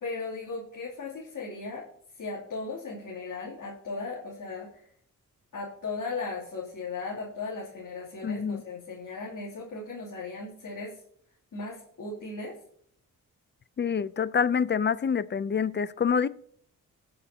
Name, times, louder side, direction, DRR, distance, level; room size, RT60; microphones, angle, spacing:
voice 1, 0.0-1.9 2.1-4.9 5.5-11.0 11.5-12.6, left 3 dB, 65° left, 2.9 m, -37 dB
voice 2, 8.2-8.6 13.8-16.3, left 6 dB, 35° left, 0.5 m, -26 dB
19.5 x 6.7 x 2.8 m
cardioid pair, 80°, 34 cm